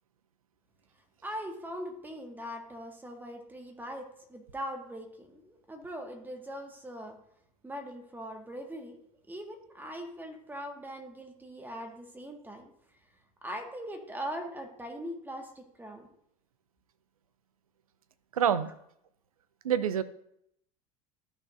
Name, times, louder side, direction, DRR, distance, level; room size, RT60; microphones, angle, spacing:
voice 1, 1.2-7.2 7.6-9.0 9.3-12.7 13.4-16.1, equal, 10° right, 3 dB, 1.8 m, -41 dB
voice 2, 18.3-18.7 19.6-20.0, right 9 dB, 75° right, 14 dB, 0.6 m, -26 dB
14.0 x 6.3 x 2.7 m, 0.73 s
figure-of-eight pair, 70°, 18 cm